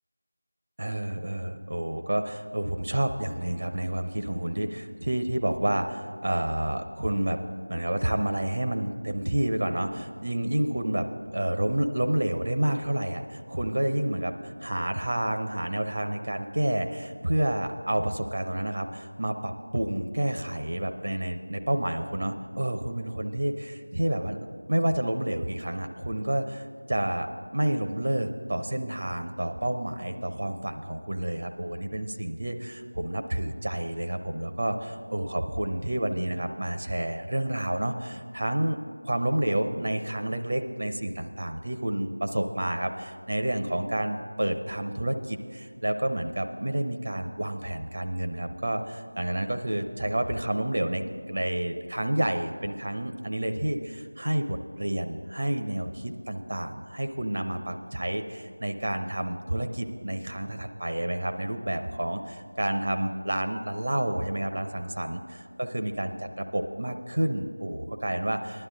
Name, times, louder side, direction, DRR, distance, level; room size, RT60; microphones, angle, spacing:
voice 1, 0.8-7.4 7.7-11.1 11.3-38.8 39.0-68.7, right 1 dB, 50° right, 6 dB, 0.6 m, -29 dB
15.5 x 11.0 x 3.9 m, 2.1 s
figure-of-eight pair, 175°, 0 cm